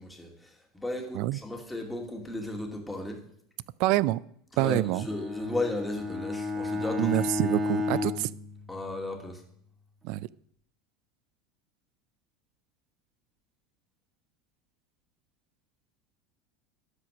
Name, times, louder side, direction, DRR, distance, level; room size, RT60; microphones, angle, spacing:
voice 1, 0.0-3.2 4.5-7.3 8.7-9.4, left 2 dB, 10° left, 2 dB, 2.4 m, -35 dB
voice 2, 3.8-4.2 4.6-5.1 7.0-8.3 10.0-10.3, right 17 dB, 60° right, 21 dB, 0.3 m, -26 dB
Bowed string instrument, 4.7-9.3, left 3 dB, 25° right, 1.4 m, -33 dB
12.0 x 5.0 x 6.3 m, 0.69 s
hypercardioid pair, 80°, 0 cm